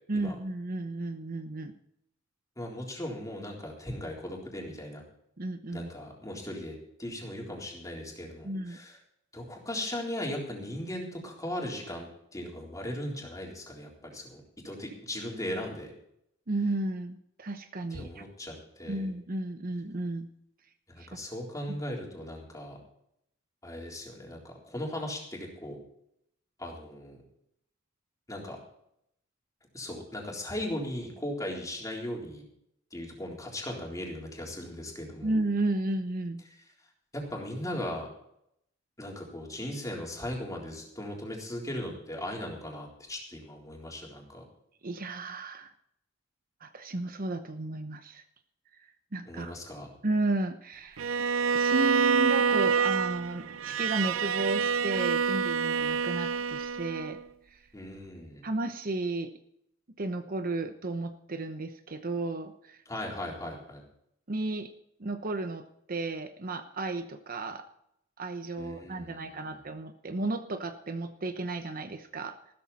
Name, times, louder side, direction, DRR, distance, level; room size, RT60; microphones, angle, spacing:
voice 1, 0.1-1.7 5.4-5.9 8.4-8.8 16.5-18.2 18.9-20.3 21.0-21.1 35.2-36.4 44.8-45.7 46.6-48.2 48.8-49.5 50.0-51.0 51.5-57.2 57.5-57.6 58.4-59.3 60.0-62.8 64.3-64.7 65.0-67.6 68.2-72.4, right 2 dB, 45° right, 9 dB, 0.9 m, -33 dB
voice 2, 2.6-5.0 5.7-9.0 9.3-15.9 17.9-19.1 20.9-22.8 23.6-25.8 26.6-27.2 28.3-28.6 29.7-32.4 32.9-35.3 37.1-38.1 39.0-44.4 49.2-49.9 57.7-58.5 62.9-63.8 68.6-69.7, left 1 dB, 15° left, -1 dB, 3.8 m, -38 dB
Bowed string instrument, 51.0-57.2, right 6 dB, 85° right, 0.6 m, -27 dB
15.0 x 13.5 x 4.2 m, 0.75 s
head